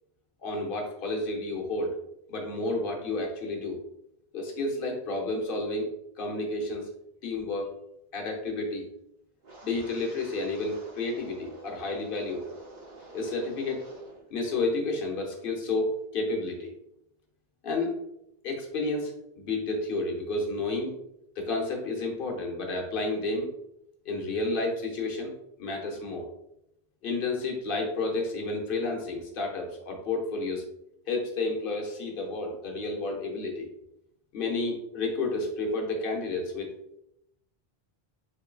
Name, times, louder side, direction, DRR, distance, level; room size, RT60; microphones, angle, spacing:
voice 1, 0.4-1.9 2.3-3.8 4.3-5.9 6.2-6.9 7.2-7.7 8.1-8.9 9.6-12.4 13.1-13.8 14.3-16.7 17.6-17.9 18.4-20.9 21.4-23.5 24.0-25.3 25.6-26.3 27.0-30.7 31.1-33.7 34.3-36.7, left 2 dB, 65° left, 1 dB, 0.9 m, -31 dB
Wind, 9.4-14.3 14.5-15.0 15.4-15.7, right 2 dB, 50° right, 0.9 m, -49 dB
3.7 x 3.5 x 2.2 m, 0.80 s
omnidirectional pair, 1.0 m